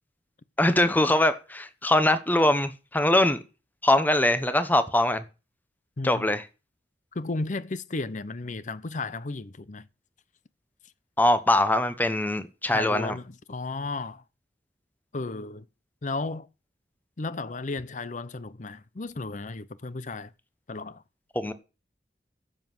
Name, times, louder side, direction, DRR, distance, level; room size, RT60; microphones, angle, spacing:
voice 1, 0.6-3.4 3.8-5.2 6.0-6.4 11.2-13.2 21.3-21.5, left 1 dB, 10° left, 1.0 m, -22 dB
voice 2, 7.1-9.9 12.7-14.2 15.1-15.7 16.0-16.5 17.2-20.3 20.7-21.0, left 3 dB, 45° left, 0.7 m, -34 dB
10.5 x 7.5 x 6.1 m
head